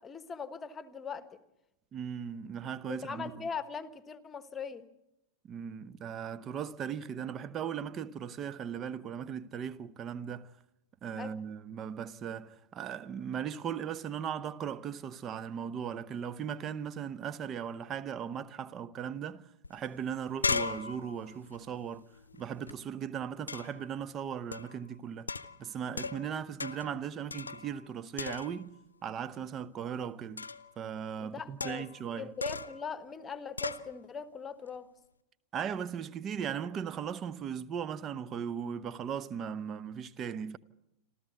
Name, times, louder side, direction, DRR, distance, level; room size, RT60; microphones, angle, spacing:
voice 1, 0.0-1.4 2.9-4.9 11.2-11.3 31.2-31.8 32.2-34.9, left 6 dB, 20° left, 1.3 m, -40 dB
voice 2, 1.9-3.3 5.5-10.5 11.0-19.4 19.7-22.1 22.4-25.3 25.6-28.7 29.0-30.5 30.8-32.3 35.5-40.6, right 8 dB, 30° right, 0.8 m, -38 dB
sound 1, 19.6-19.7 20.0-22.7 23.5-23.9 24.5-24.8 25.3-26.3 26.6-27.0 27.3-27.9 28.2-28.8 30.4-30.7 31.6-32.0 32.4-32.8 33.6-33.9, left 4 dB, 75° left, 0.7 m, -37 dB
27.0 x 14.0 x 8.1 m
figure-of-eight pair, 90°, 0 cm